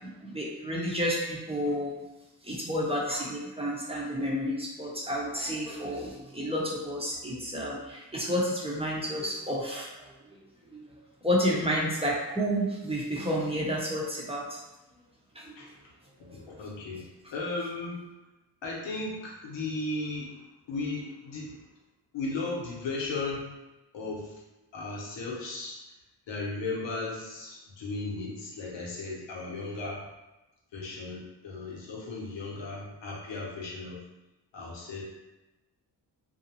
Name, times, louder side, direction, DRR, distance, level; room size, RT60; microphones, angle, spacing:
voice 1, 0.0-2.0 2.4-10.1 10.7-10.9 11.2-14.6 15.3-15.5 16.2-16.4, equal, 15° right, -4 dB, 0.7 m, -30 dB
voice 2, 16.3-17.0 17.3-18.0 18.6-20.3 20.7-21.6 22.1-23.5 23.9-24.3 24.7-25.8 26.3-30.0 30.7-34.0 34.5-35.0, left 3 dB, 85° left, -3 dB, 0.8 m, -35 dB
2.6 x 2.0 x 2.8 m, 1.0 s
cardioid pair, 60°, 43 cm